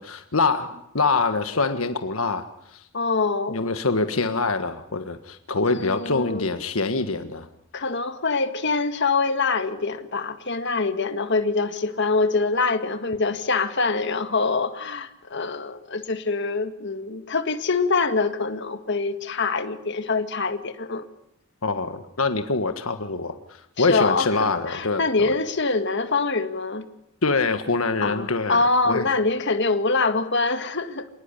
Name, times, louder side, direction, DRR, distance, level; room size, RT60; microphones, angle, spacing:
voice 1, 0.0-2.8 3.5-7.5 21.6-25.3 27.2-29.1, left 3 dB, 75° left, 9 dB, 1.5 m, -25 dB
voice 2, 2.9-3.6 5.7-6.5 7.7-21.1 23.8-26.8 28.0-31.1, left 3 dB, 55° left, 9 dB, 1.9 m, -24 dB
27.0 x 19.5 x 9.9 m, 0.81 s
head